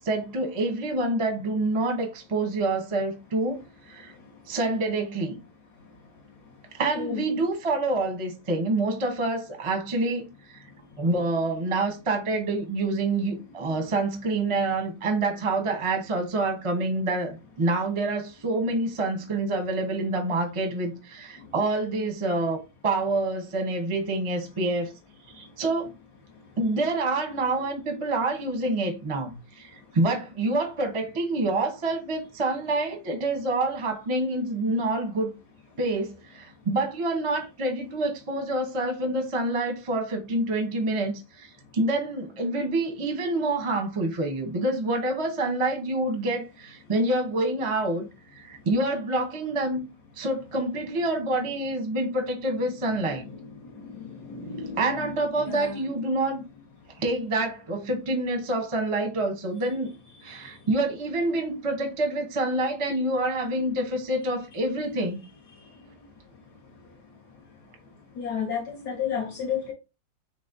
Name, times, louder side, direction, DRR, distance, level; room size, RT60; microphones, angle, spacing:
voice 1, 0.0-3.6 3.9-4.1 4.5-5.4 6.7-10.3 11.0-24.9 25.3-25.9 26.6-35.3 35.8-48.1 48.4-49.9 50.2-53.3 54.8-56.4 57.0-59.9 60.2-65.2, right 2 dB, 30° right, 0.5 m, -27 dB
voice 2, 54.0-55.1 55.4-55.7 68.2-69.7, left 7 dB, 65° left, 1.3 m, -31 dB
4.0 x 3.4 x 2.6 m
omnidirectional pair, 2.1 m